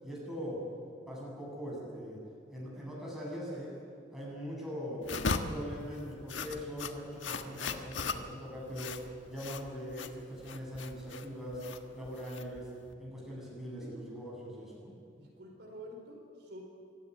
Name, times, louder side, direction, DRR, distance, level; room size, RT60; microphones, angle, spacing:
voice 1, 0.0-0.6 1.1-2.2 2.5-3.8 4.1-5.1 5.5-9.0 9.3-11.6 11.9-12.7 13.0-14.9, equal, ahead, -4 dB, 7.9 m, -41 dB
sound 1, 5.0-12.9, left 4 dB, 75° left, 1.4 m, -38 dB
voice 2, 15.2-16.6, equal, 60° right, 0 dB, 4.6 m, -48 dB
26.5 x 16.0 x 9.8 m, 2.5 s
head